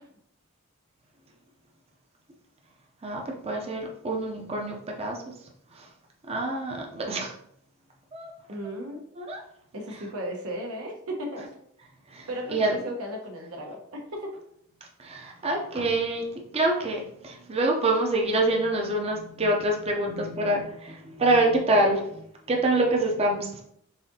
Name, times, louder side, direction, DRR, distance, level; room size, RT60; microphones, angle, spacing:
voice 1, 3.0-5.2 5.8-5.9 6.3-7.3 8.1-8.3 9.2-9.4 12.1-12.8 15.0-23.6, right 2 dB, 30° right, 0 dB, 0.5 m, -26 dB
voice 2, 8.5-9.0 9.7-11.5 12.3-14.3, equal, 90° right, 1 dB, 1.0 m, -35 dB
4.1 x 3.7 x 2.7 m, 0.71 s
head